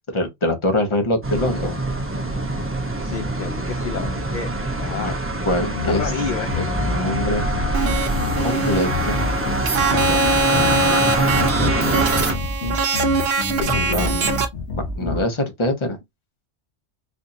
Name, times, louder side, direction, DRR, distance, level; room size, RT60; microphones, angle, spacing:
voice 1, 0.1-1.8 5.0-5.1 5.4-6.0 6.6-7.4 8.4-9.2 9.9-10.2 10.5-11.0 11.6-12.0 13.7-14.3 15.0-16.0, left 1 dB, 30° left, 0.8 m, -24 dB
sound 1, 1.2-12.3, right 2 dB, 15° right, 0.6 m, -24 dB
voice 2, 3.0-4.5 4.8-5.2 5.9-6.7 13.5-14.3, left 7 dB, 55° left, 0.6 m, -30 dB
sound 2, 5.7-15.2, left 3 dB, 80° left, 1.4 m, -28 dB
sound 3, 7.7-14.4, right 3 dB, 65° right, 0.9 m, -22 dB
4.4 x 2.6 x 2.6 m
omnidirectional pair, 1.2 m